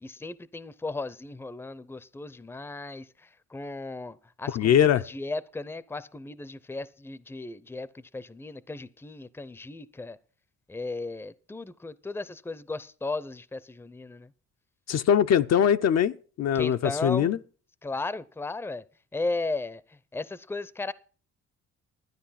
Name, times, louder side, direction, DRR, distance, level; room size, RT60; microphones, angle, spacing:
voice 1, 0.0-10.2 10.7-14.3 16.5-17.4 17.8-18.8 19.1-19.8 20.1-20.9, left 3 dB, 10° left, 0.6 m, -36 dB
voice 2, 4.5-5.0 14.9-17.4, left 9 dB, 60° left, 0.6 m, -22 dB
12.0 x 9.7 x 5.7 m
cardioid pair, 90°, 30 cm